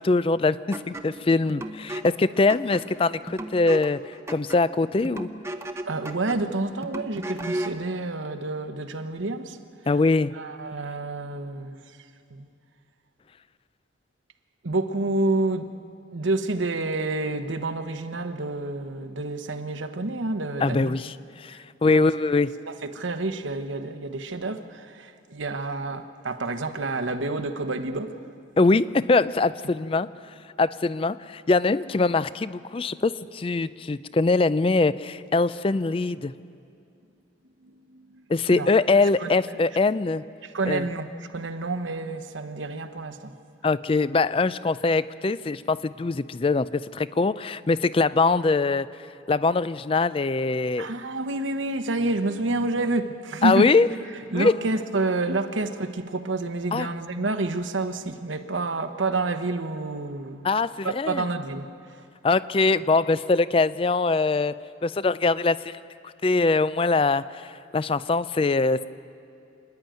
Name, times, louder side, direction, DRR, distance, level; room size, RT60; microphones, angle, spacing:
voice 1, 0.0-4.0 4.3-5.3 9.9-10.3 20.6-22.5 28.6-30.1 30.6-36.3 38.3-40.2 40.7-40.9 43.6-48.9 49.3-50.9 53.4-53.9 54.3-54.5 56.7-56.9 60.4-61.2 62.2-64.5 64.8-65.8 66.2-68.9, left 3 dB, 30° left, 16 dB, 0.4 m, -22 dB
sound 1, 0.7-7.9, right 1 dB, 15° right, 0.8 m, -36 dB
voice 2, 5.9-9.6 10.3-11.8 12.3-12.5 14.6-15.7 16.1-21.0 21.9-22.1 22.7-28.2 37.6-38.2 38.5-38.8 39.2-39.3 40.4-43.3 50.8-53.7 54.3-60.5 60.8-62.0, right 2 dB, 90° right, 9 dB, 1.1 m, -29 dB
27.5 x 10.5 x 9.0 m, 2.5 s
head